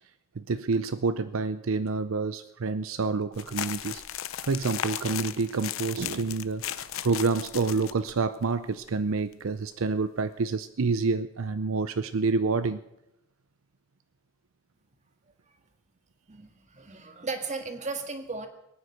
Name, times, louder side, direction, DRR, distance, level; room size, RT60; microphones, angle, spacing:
voice 1, 0.4-4.0 4.4-12.8, right 4 dB, 75° right, 0.6 m, -28 dB
sound 1, 3.3-8.1 8.4-8.5 8.8-8.9 9.3-9.5, left 10 dB, 75° left, 0.7 m, -36 dB
voice 2, 16.3-18.5, right 3 dB, 35° right, 1.8 m, -35 dB
22.0 x 9.6 x 6.4 m
head